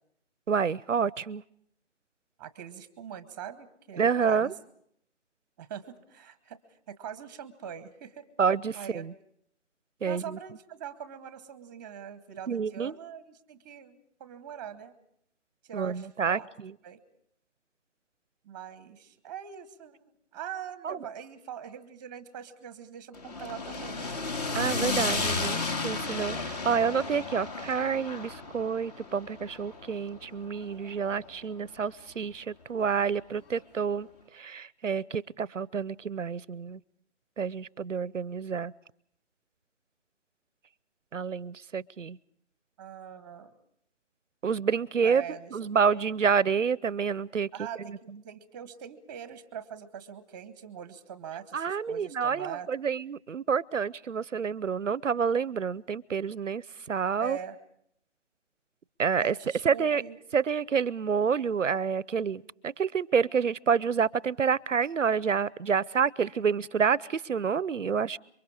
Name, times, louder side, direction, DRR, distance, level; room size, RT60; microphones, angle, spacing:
voice 1, 0.5-1.4 4.0-4.5 8.4-9.1 10.0-10.4 12.5-12.9 15.7-16.7 20.8-21.0 24.5-34.1 34.3-36.8 37.4-38.7 41.1-42.2 44.4-45.2 45.5-47.5 51.5-57.4 59.0-59.3 59.6-60.0 60.3-68.2, right 6 dB, 90° right, 22 dB, 0.8 m, -28 dB
voice 2, 2.4-4.5 5.6-8.3 8.7-9.0 10.1-14.9 15.6-16.5 16.8-17.0 18.4-20.0 20.3-24.1 42.8-43.5 45.0-46.0 47.5-52.7 57.2-57.6 59.2-60.2, right 8 dB, 15° right, 13 dB, 1.1 m, -42 dB
sound 1, 23.1-31.4, left 3 dB, 35° left, 2.2 m, -33 dB
27.0 x 24.0 x 4.9 m, 0.71 s
figure-of-eight pair, 155°, 36 cm